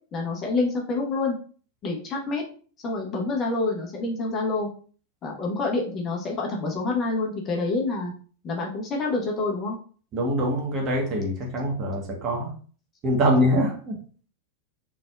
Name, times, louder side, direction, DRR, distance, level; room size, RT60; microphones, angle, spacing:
voice 1, 0.1-1.3 1.8-2.4 2.8-4.7 5.2-8.1 8.4-9.8, left 3 dB, 30° left, 0 dB, 1.1 m, -27 dB
voice 2, 10.1-12.5 13.0-13.9, equal, 30° right, 0 dB, 1.3 m, -24 dB
4.0 x 3.6 x 2.4 m, 0.42 s
figure-of-eight pair, 90°, 0 cm